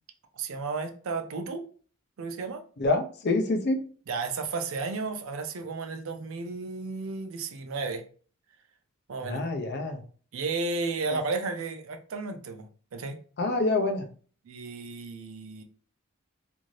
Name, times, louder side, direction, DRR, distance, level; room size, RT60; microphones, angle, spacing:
voice 1, 0.3-1.6 2.2-2.6 4.1-8.0 9.1-9.4 10.3-12.6 12.9-13.2 14.5-15.6, right 4 dB, 75° right, 6 dB, 0.5 m, -33 dB
voice 2, 2.8-3.8 9.2-10.0 11.1-11.2 13.4-14.1, left 2 dB, 50° left, 5 dB, 0.5 m, -26 dB
2.5 x 2.5 x 3.1 m, 0.42 s
head